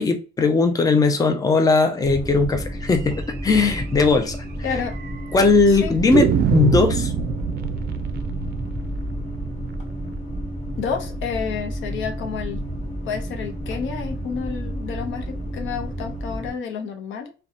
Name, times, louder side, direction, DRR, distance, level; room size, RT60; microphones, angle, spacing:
voice 1, 0.0-4.4 5.3-7.1, left 4 dB, 20° left, 0.5 m, -18 dB
sound 1, 2.0-16.5, equal, 35° left, 0.9 m, -31 dB
sound 2, 3.3-3.4 3.8-3.9 4.1-4.2 4.9-5.4 6.1-10.9, right 7 dB, 55° right, 0.4 m, -25 dB
voice 2, 4.6-5.0 5.7-6.0 10.8-12.6 13.0-17.3, left 6 dB, 75° left, 0.6 m, -30 dB
2.7 x 2.2 x 2.4 m
cardioid pair, 90°, 20 cm